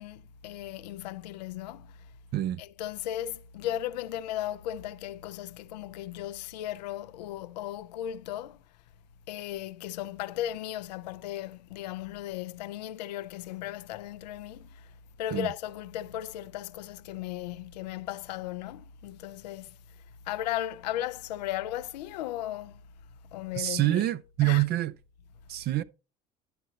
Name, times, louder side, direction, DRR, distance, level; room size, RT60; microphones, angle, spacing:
voice 1, 0.0-2.1 2.6-8.6 9.3-14.9 15.2-19.8 20.2-22.8 23.3-24.0 24.4-24.6, left 12 dB, 85° left, 0.5 m, -36 dB
voice 2, 23.5-24.9 25.5-25.8, right 15 dB, 50° right, 0.6 m, -26 dB
11.0 x 6.4 x 2.7 m
hypercardioid pair, 80°, 21 cm